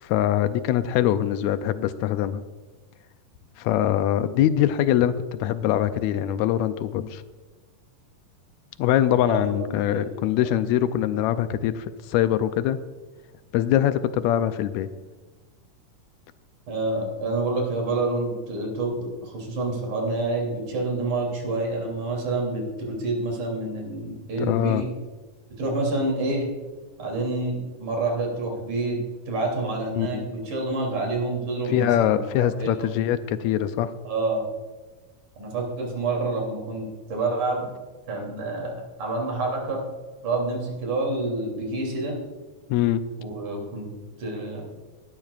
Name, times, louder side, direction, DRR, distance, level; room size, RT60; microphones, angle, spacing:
voice 1, 0.0-2.4 3.6-5.1 5.4-7.2 8.8-12.8 13.5-14.9 24.5-24.9 30.0-30.3 31.6-33.9 42.7-43.0, left 11 dB, 85° left, 11 dB, 1.6 m, -23 dB
voice 2, 9.3-10.0 10.4-10.5 16.7-24.9 25.6-26.5 27.0-29.0 29.3-32.2 32.6-32.9 34.0-34.4 35.4-37.7 38.1-39.8 40.2-42.2 43.2-43.9 44.2-44.7, right 2 dB, 65° right, 0 dB, 4.4 m, -28 dB
19.5 x 12.0 x 2.4 m, 1.3 s
omnidirectional pair, 3.7 m